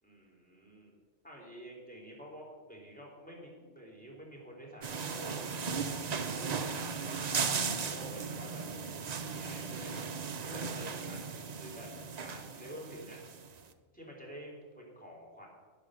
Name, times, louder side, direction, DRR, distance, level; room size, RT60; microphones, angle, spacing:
voice 1, 0.0-0.9 1.2-5.5 6.3-8.6 8.9-10.0 10.4-11.9 12.2-13.2 13.9-15.5, equal, 5° left, -2 dB, 3.3 m, -49 dB
sound 1, 4.8-13.6, right 5 dB, 45° right, 0.6 m, -37 dB
11.0 x 10.5 x 6.3 m, 1.5 s
omnidirectional pair, 1.4 m